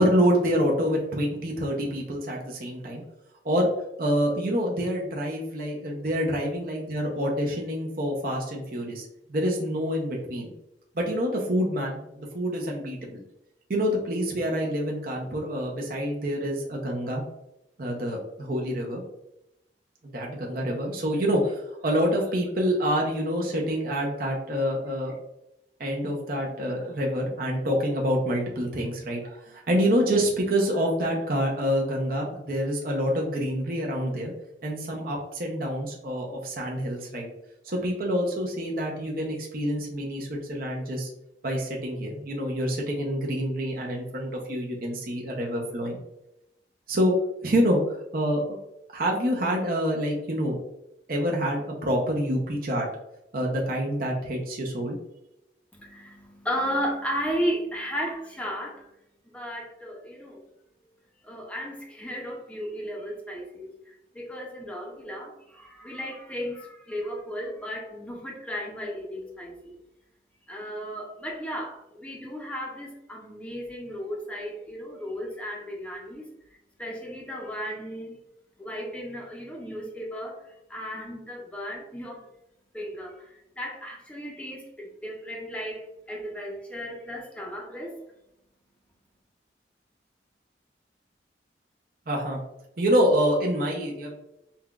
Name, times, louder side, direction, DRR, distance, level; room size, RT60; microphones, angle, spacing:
voice 1, 0.0-3.0 3.4-3.7 4.0-9.0 9.3-10.5 11.0-13.2 13.7-17.2 17.8-19.0 20.0-25.1 25.8-34.3 34.6-37.3 37.6-41.1 41.4-46.0 46.9-47.1 47.4-48.4 48.9-50.6 51.1-52.9 53.3-55.0 92.1-92.4 92.8-94.2, equal, 50° right, -1 dB, 0.6 m, -27 dB
voice 2, 55.7-58.9 59.2-60.5 61.2-69.8 70.5-76.3 76.8-78.2 78.6-82.3 82.7-88.0, equal, 5° left, 0 dB, 0.6 m, -35 dB
5.5 x 2.2 x 2.3 m, 0.87 s
head